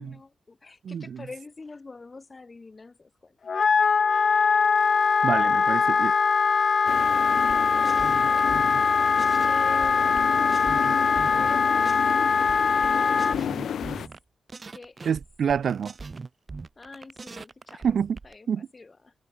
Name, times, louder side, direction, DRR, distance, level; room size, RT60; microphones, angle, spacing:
voice 1, 0.0-3.4 7.4-8.4 9.4-10.3 11.3-12.4 12.8-13.9 14.7-15.2 16.8-17.9 18.2-18.5 18.7-19.1, left 3 dB, 30° left, 4.2 m, -45 dB
voice 2, 0.8-1.2 5.2-6.1 15.1-15.9 17.8-18.2 18.5-18.7, right 7 dB, 70° right, 0.6 m, -27 dB
Wind instrument woodwind instrument, 3.5-13.4, left 5 dB, 50° left, 0.6 m, -22 dB
sound 1, 6.9-14.1, left 9 dB, 90° left, 1.9 m, -33 dB
sound 2, 7.4-9.5 9.8-12.2 12.5-14.2 14.5-18.3, right 4 dB, 35° right, 1.7 m, -41 dB
wide cardioid pair, 110°, 0 cm